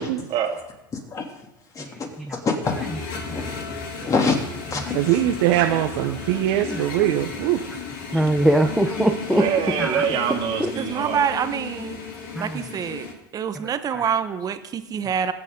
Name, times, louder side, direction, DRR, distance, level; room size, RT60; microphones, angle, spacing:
voice 1, 0.3-0.6 6.2-6.4 8.1-8.2 9.3-11.2, right 8 dB, 50° right, 3 dB, 2.4 m, -25 dB
voice 2, 1.7-3.4 4.0-4.4 4.7-5.2, left 4 dB, 30° left, 1 dB, 3.1 m, -26 dB
sound 1, 2.6-13.1, left 5 dB, 70° left, 2.9 m, -34 dB
voice 3, 4.9-7.6, right 13 dB, 70° right, 5 dB, 1.0 m, -21 dB
voice 4, 8.1-9.4 9.8-10.0 10.6-10.7 12.3-12.6 13.9-14.1, right 1 dB, ahead, 4 dB, 0.8 m, -21 dB
voice 5, 10.8-12.0 12.4-13.1 13.3-15.3, right 7 dB, 35° right, 11 dB, 1.1 m, -26 dB
21.5 x 8.3 x 3.9 m, 0.95 s
hypercardioid pair, 100°, 11 cm